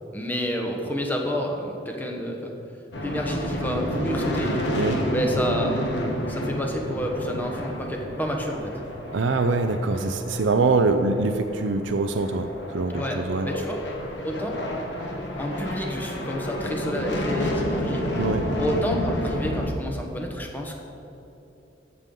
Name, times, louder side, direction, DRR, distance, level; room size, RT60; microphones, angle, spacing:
voice 1, 0.1-2.5 3.0-4.5 5.1-5.7 6.3-8.7 12.9-13.2 13.4-13.8 14.2-14.6 15.4-18.1 18.6-20.8, equal, 10° left, 1 dB, 1.0 m, -29 dB
sound 1, 2.9-19.7, equal, 65° left, 1.3 m, -30 dB
voice 2, 9.1-13.5 18.1-18.5, right 3 dB, 80° right, 7 dB, 0.5 m, -24 dB
14.5 x 6.9 x 3.8 m, 3.0 s
head